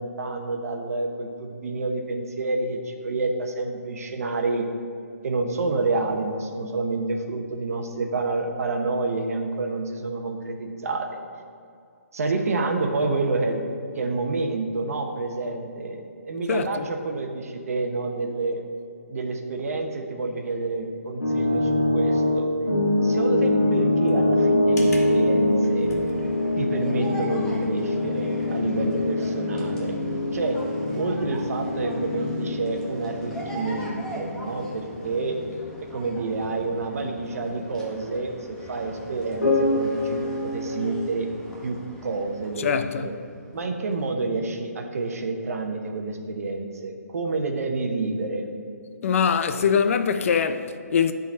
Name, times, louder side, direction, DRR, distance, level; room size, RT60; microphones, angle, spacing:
voice 1, 0.0-4.6 5.2-11.1 12.1-13.6 13.9-18.6 19.1-22.5 23.0-25.9 26.6-30.0 30.3-30.6 30.9-35.4 35.9-41.3 41.6-41.8 42.0-43.1 43.5-48.5, right 3 dB, 65° right, 0.9 m, -28 dB
voice 2, 16.5-16.8 42.6-43.1 49.0-51.1, left 6 dB, 55° left, 0.4 m, -23 dB
sound 1, 21.2-36.7 37.0-37.2 39.4-41.1, left 1 dB, 80° left, 1.5 m, -24 dB
sound 2, 25.6-44.1, right 1 dB, 5° left, 0.9 m, -42 dB
9.2 x 3.9 x 4.2 m
hypercardioid pair, 145°, 9 cm